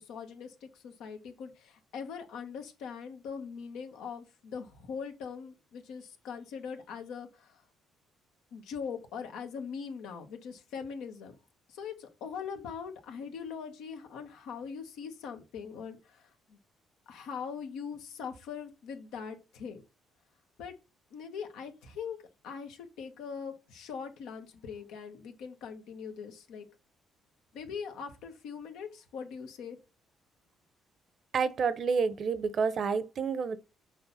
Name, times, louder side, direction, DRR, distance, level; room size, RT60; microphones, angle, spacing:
voice 1, 0.0-7.6 8.5-11.3 11.7-16.6 17.1-19.8 20.6-20.7 21.1-22.2 22.4-26.7 27.5-29.8, left 6 dB, 80° left, 1.4 m, -41 dB
voice 2, 31.3-33.6, right 5 dB, 55° right, 0.8 m, -29 dB
6.4 x 4.7 x 4.1 m
supercardioid pair, 75°, 0 cm